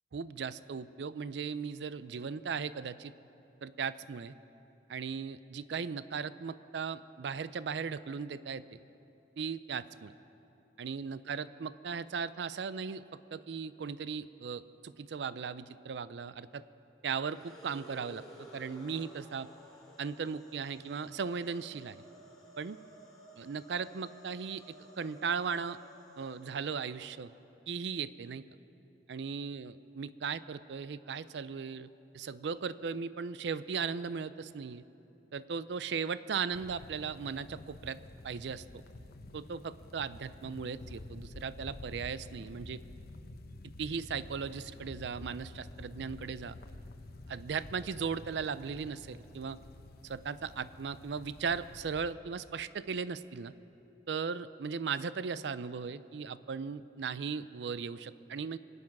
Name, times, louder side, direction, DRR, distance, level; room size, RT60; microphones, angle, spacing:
voice 1, 0.1-3.1 3.6-4.3 4.9-8.8 9.4-10.1 10.8-13.0 13.3-16.6 17.0-18.2 18.5-19.5 20.0-22.0 22.6-22.8 23.4-25.8 26.2-27.3 27.7-28.4 29.1-31.9 32.1-34.8 35.3-38.0 38.2-38.6 39.3-42.8 43.8-46.6 47.3-49.6 50.0-53.5 54.1-58.6, right 6 dB, 70° right, 15 dB, 0.4 m, -37 dB
sound 1, 17.2-27.5, equal, 5° left, 3.1 m, -55 dB
sound 2, 36.5-52.1, left 2 dB, 60° left, 0.8 m, -50 dB
24.5 x 9.7 x 5.9 m, 2.9 s
head